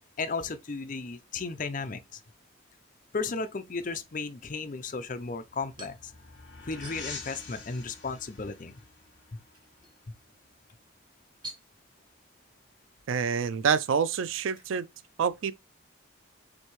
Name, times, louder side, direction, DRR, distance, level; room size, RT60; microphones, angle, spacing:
voice 1, 0.2-2.2 3.1-6.1 6.7-8.7 9.3-9.4 10.1-10.2, left 4 dB, 40° left, 0.5 m, -35 dB
sound 1, 2.0-14.6, right 2 dB, 20° right, 1.1 m, -55 dB
sound 2, 5.1-10.4, left 4 dB, 60° left, 1.8 m, -46 dB
voice 2, 13.1-14.9 15.2-15.5, right 6 dB, 75° right, 0.4 m, -27 dB
6.3 x 2.7 x 3.0 m
head